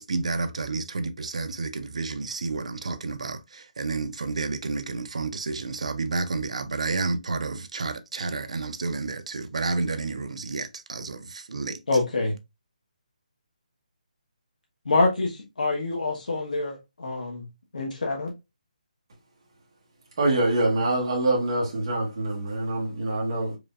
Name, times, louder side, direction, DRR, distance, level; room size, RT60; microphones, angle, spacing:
voice 1, 0.0-11.8, right 3 dB, 50° right, 0.5 m, -30 dB
voice 2, 11.9-12.3 14.8-17.5 17.7-18.3, left 3 dB, 75° left, 1.2 m, -26 dB
voice 3, 20.2-23.6, right 2 dB, 30° right, 1.2 m, -25 dB
4.9 x 2.7 x 2.4 m
hypercardioid pair, 180°, 4 cm